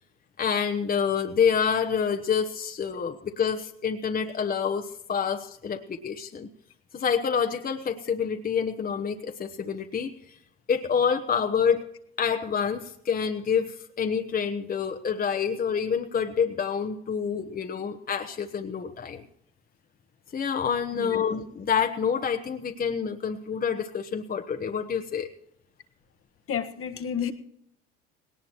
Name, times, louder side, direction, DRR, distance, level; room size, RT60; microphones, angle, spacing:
voice 1, 0.4-6.5 6.9-10.1 10.7-11.8 12.2-19.2 20.3-25.3, left 7 dB, 30° left, 5 dB, 1.1 m, -27 dB
voice 2, 26.5-27.3, left 8 dB, 45° left, 8 dB, 1.4 m, -30 dB
18.5 x 18.5 x 3.1 m, 0.75 s
hypercardioid pair, 70°, 30 cm